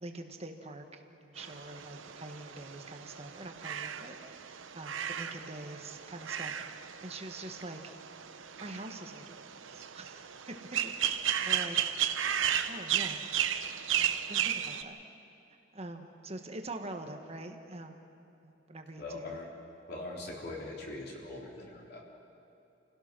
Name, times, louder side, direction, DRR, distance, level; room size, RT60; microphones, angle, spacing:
voice 1, 0.0-4.5 4.7-7.9 8.6-9.4 9.7-10.2 10.5-10.6 10.8-11.8 12.7-13.2 14.0-15.0 15.7-18.0 18.4-19.4, right 2 dB, 30° right, 5 dB, 1.5 m, -44 dB
sound 1, 1.4-14.8, right 9 dB, 85° right, 0.8 m, -35 dB
voice 2, 19.0-19.5 19.9-22.0, left 2 dB, 55° left, -2 dB, 3.7 m, -41 dB
29.0 x 17.0 x 6.2 m, 2.8 s
head